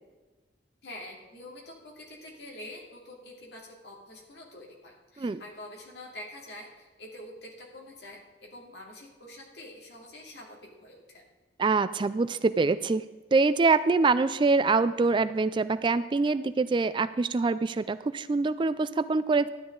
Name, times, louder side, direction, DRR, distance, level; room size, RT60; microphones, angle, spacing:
voice 1, 0.8-11.2, left 1 dB, 65° left, -1 dB, 2.7 m, -46 dB
voice 2, 11.6-13.0 13.3-19.5, right 3 dB, 30° right, 14 dB, 0.3 m, -25 dB
12.5 x 9.8 x 3.9 m, 1.3 s
head